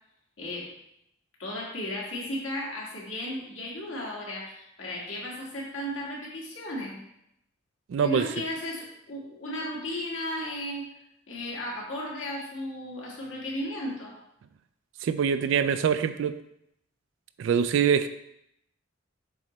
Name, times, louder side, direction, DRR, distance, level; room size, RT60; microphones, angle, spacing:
voice 1, 0.4-0.7 1.4-7.0 8.0-10.9 11.3-14.2, left 1 dB, 70° left, -3 dB, 1.7 m, -35 dB
voice 2, 7.9-8.3 15.0-16.4 17.4-18.1, right 7 dB, 65° right, 11 dB, 0.3 m, -24 dB
7.3 x 3.2 x 4.0 m, 0.78 s
head